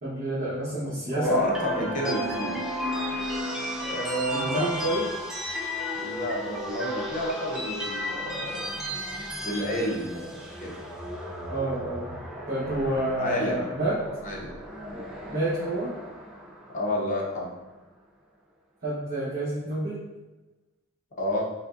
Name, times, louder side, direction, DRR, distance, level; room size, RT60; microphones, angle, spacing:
voice 1, 0.0-1.4 4.3-5.0 11.5-12.2 12.5-14.0 15.3-15.9 18.8-20.0, right 1 dB, 45° right, -11 dB, 1.0 m, -29 dB
voice 2, 1.1-2.6 3.8-4.7 5.9-8.7 9.4-10.7 13.2-13.7 14.2-14.5 16.7-17.5 21.2-21.4, left 1 dB, 40° left, -2 dB, 0.7 m, -29 dB
sound 1, 1.2-17.4, equal, ahead, 0.4 m, -34 dB
5.0 x 2.1 x 2.5 m, 1.1 s
head